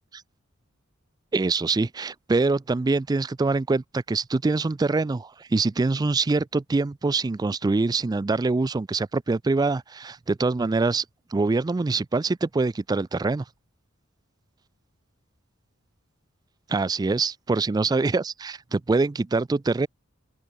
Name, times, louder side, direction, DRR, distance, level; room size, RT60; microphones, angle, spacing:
voice 1, 1.3-11.0 11.3-13.4 16.7-19.9, right 3 dB, 20° right, 0.3 m, -24 dB
open air
head